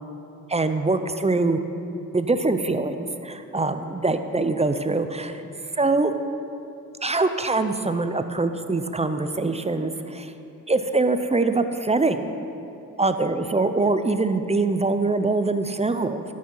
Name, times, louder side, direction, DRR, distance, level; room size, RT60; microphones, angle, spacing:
voice 1, 0.5-1.6 2.1-5.4 5.7-6.1 7.0-10.3 10.7-12.3 13.0-16.2, right 3 dB, 20° right, 9 dB, 0.5 m, -23 dB
12.5 x 6.4 x 5.5 m, 2.9 s
cardioid pair, 75°, 35 cm